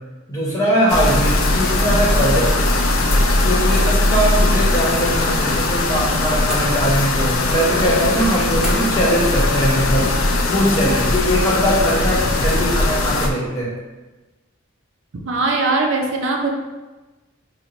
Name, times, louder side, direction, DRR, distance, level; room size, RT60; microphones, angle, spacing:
voice 1, 0.3-2.6 3.4-10.1 10.4-13.7, equal, 15° left, -7 dB, 1.0 m, -20 dB
sound 1, 0.9-13.3, left 2 dB, 80° left, 0.5 m, -19 dB
sound 2, 6.5-7.2 8.6-9.1, right 1 dB, 5° right, 0.6 m, -33 dB
voice 2, 15.3-16.5, right 3 dB, 65° right, 0 dB, 0.5 m, -20 dB
5.5 x 2.1 x 2.9 m, 1.2 s
head